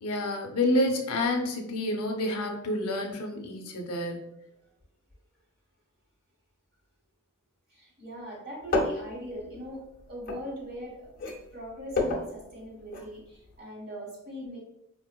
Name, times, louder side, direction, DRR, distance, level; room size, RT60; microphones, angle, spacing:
voice 1, 0.0-4.2, left 1 dB, 80° left, 3 dB, 0.6 m, -28 dB
voice 2, 7.7-11.1 11.5-14.6, equal, 40° right, -3 dB, 1.4 m, -41 dB
sound 1, 8.6-10.9 11.2-13.2 13.4-13.5, left 2 dB, 40° left, 0.6 m, -31 dB
4.6 x 2.4 x 2.2 m, 0.81 s
head